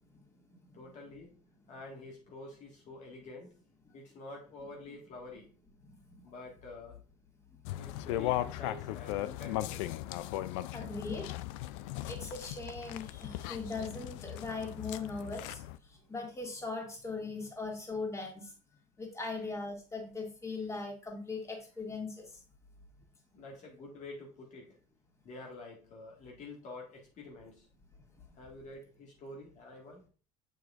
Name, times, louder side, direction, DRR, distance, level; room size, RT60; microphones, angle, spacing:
voice 1, 0.7-1.3 1.7-3.5 3.9-5.5 6.2-7.0 7.8-9.9 16.0-16.1 23.3-24.8 25.2-27.7 28.4-30.0, left 2 dB, 50° left, -1 dB, 1.7 m, -48 dB
sound 1, 7.6-15.8, left 14 dB, 80° left, 0.4 m, -37 dB
voice 2, 10.7-11.3 12.1-15.6 15.9-18.5 19.0-22.4, left 3 dB, 20° left, 0 dB, 2.0 m, -39 dB
6.8 x 6.2 x 2.4 m, 0.37 s
supercardioid pair, 95°, 16 cm